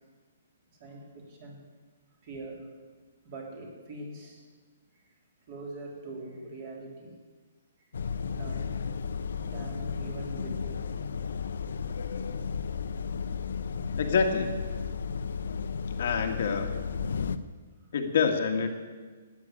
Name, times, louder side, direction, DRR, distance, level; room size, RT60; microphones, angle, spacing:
voice 1, 0.8-1.6 2.2-2.7 3.2-4.5 4.9-5.1 5.5-7.1 8.3-8.8 9.2-10.9, right 2 dB, 30° right, 0 dB, 3.5 m, -43 dB
sound 1, 7.9-17.4, left 6 dB, 70° left, 0.9 m, -34 dB
voice 2, 14.0-14.5 16.0-16.7 17.9-18.7, left 5 dB, 45° left, 4 dB, 1.5 m, -26 dB
13.5 x 9.4 x 9.9 m, 1.4 s
hypercardioid pair, 175°, 0 cm